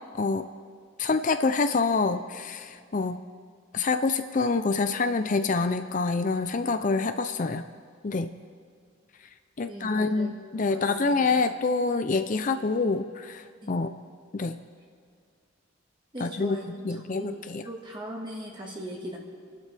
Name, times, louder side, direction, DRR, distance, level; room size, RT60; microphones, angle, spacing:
voice 1, 0.1-0.5 1.0-3.2 3.7-7.6 8.0-8.3 9.6-13.9 14.3-14.6 16.2-17.7, left 4 dB, 40° left, 9 dB, 0.5 m, -26 dB
voice 2, 9.7-11.1 13.6-13.8 16.1-19.2, right 1 dB, 25° right, -2 dB, 1.7 m, -40 dB
29.5 x 12.0 x 3.4 m, 2.2 s
head